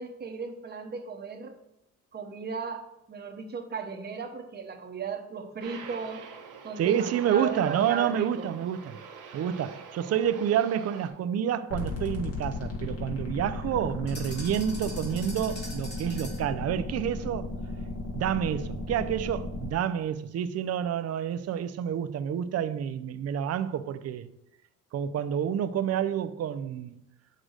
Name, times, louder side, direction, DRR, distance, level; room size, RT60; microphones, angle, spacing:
voice 1, 0.0-1.5 2.1-6.2 6.6-8.5, right 5 dB, 35° right, 1.0 m, -36 dB
Aircraft, 5.6-11.1, right 6 dB, 85° right, 1.2 m, -45 dB
voice 2, 6.8-9.0 9.3-17.5 18.1-24.3 24.9-27.0, right 9 dB, 55° right, 0.5 m, -29 dB
sound 1, 11.7-19.7, left 2 dB, 55° left, 2.1 m, -35 dB
sound 2, 14.1-16.6, left 1 dB, 35° left, 2.1 m, -43 dB
6.4 x 3.8 x 6.3 m
cardioid pair, 90°, 30 cm